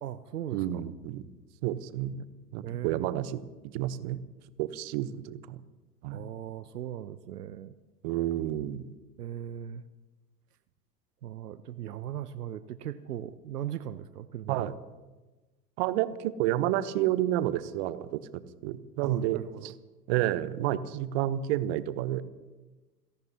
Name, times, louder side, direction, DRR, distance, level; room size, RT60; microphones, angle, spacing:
voice 1, 0.0-0.8 2.6-3.1 6.1-7.8 9.2-9.8 11.2-14.7 19.0-19.7, right 11 dB, 65° right, 15 dB, 0.8 m, -38 dB
voice 2, 0.5-1.3 1.6-2.2 2.5-3.4 3.7-4.2 4.6-5.6 6.0-6.2 8.0-8.9 14.5-14.7 15.8-18.2 18.6-19.7 20.1-22.2, right 13 dB, 40° right, 15 dB, 0.9 m, -30 dB
28.5 x 17.0 x 2.8 m, 1.2 s
figure-of-eight pair, 90°, 49 cm